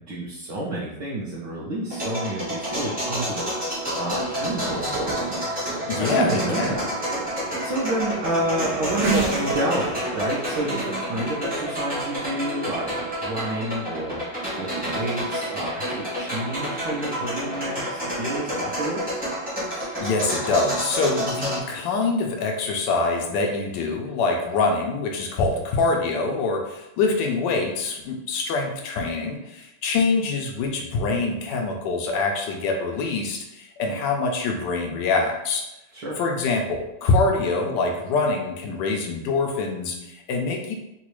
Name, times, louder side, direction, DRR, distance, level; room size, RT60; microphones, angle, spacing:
voice 1, 0.0-3.5 3.9-6.9 7.3-12.9 13.2-19.2 35.9-36.2, right 1 dB, 65° right, -6 dB, 1.2 m, -29 dB
sound 1, 1.9-21.6, equal, 5° right, 0.7 m, -29 dB
Race car auto racing / Accelerating revving vroom, 2.6-18.8, right 4 dB, 90° right, 1.7 m, -36 dB
voice 2, 5.9-6.8 19.7-35.6 36.2-40.7, left 3 dB, 80° left, 2 dB, 1.0 m, -25 dB
3.9 x 2.3 x 3.0 m, 0.91 s
omnidirectional pair, 2.4 m